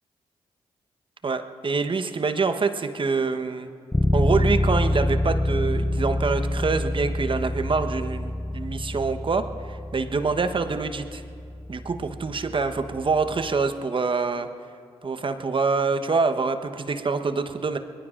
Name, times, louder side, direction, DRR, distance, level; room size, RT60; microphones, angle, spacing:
voice 1, 1.2-3.7 4.1-11.2 11.7-14.5 15.0-17.8, right 4 dB, 40° right, 8 dB, 1.1 m, -25 dB
Bass guitar, 3.9-13.6, left 1 dB, 10° left, 0.6 m, -27 dB
26.5 x 21.0 x 2.5 m, 2.4 s
hypercardioid pair, 45°, 13 cm